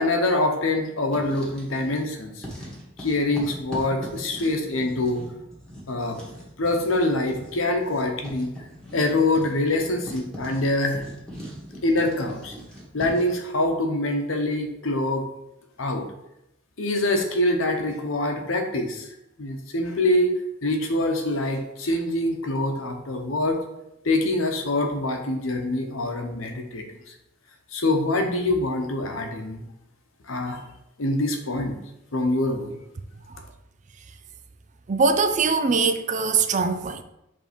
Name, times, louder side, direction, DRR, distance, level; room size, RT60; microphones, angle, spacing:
voice 1, 0.0-2.5 3.0-5.3 5.9-6.2 6.6-8.7 8.9-11.0 11.8-12.5 12.9-15.2 15.8-16.0 16.8-19.1 19.4-20.3 20.6-23.6 24.0-27.1 27.7-29.6 30.3-30.6 31.0-31.7 32.1-32.8, left 2 dB, 75° left, 0.9 m, -25 dB
Writing, 1.0-2.1 2.4-13.4, equal, 5° left, 1.7 m, -41 dB
voice 2, 34.9-37.0, right 4 dB, 35° right, 0.4 m, -22 dB
5.2 x 3.6 x 5.1 m
head